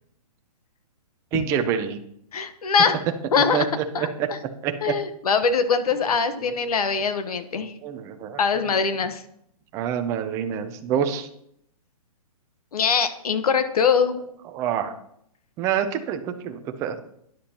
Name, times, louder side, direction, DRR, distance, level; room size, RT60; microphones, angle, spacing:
voice 1, 1.3-2.0 3.5-3.8 4.2-4.3 4.6-4.9 6.4-6.5 7.8-8.4 9.7-11.3 14.5-14.9 15.6-17.0, right 8 dB, 15° right, 7 dB, 0.6 m, -26 dB
voice 2, 2.3-3.0 3.3-3.7 3.9-4.4 4.8-7.7 8.4-9.2 12.7-14.2, left 6 dB, 70° left, 10 dB, 1.2 m, -22 dB
12.5 x 10.5 x 2.9 m, 0.72 s
hypercardioid pair, 160°, 20 cm